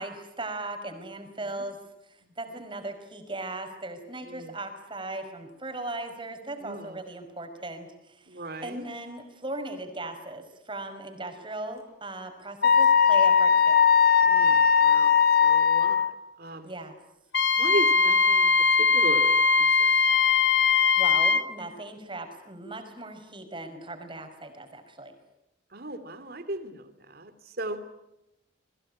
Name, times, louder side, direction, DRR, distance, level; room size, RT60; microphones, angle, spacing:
voice 1, 0.0-1.8 2.1-13.8 16.6-16.9 21.0-25.1, right 2 dB, 25° right, 6 dB, 5.2 m, -38 dB
voice 2, 4.2-4.5 6.6-7.0 8.3-8.8 14.2-16.1 16.4-16.7 17.6-18.5 18.9-20.1 25.7-27.8, right 1 dB, 50° right, 10 dB, 2.9 m, -36 dB
Wind instrument woodwind instrument, 12.6-16.1, left 7 dB, 50° left, 1.9 m, -19 dB
Wind instrument woodwind instrument 2, 17.3-21.5, left 4 dB, 70° left, 2.2 m, -21 dB
28.0 x 22.0 x 8.7 m, 0.89 s
head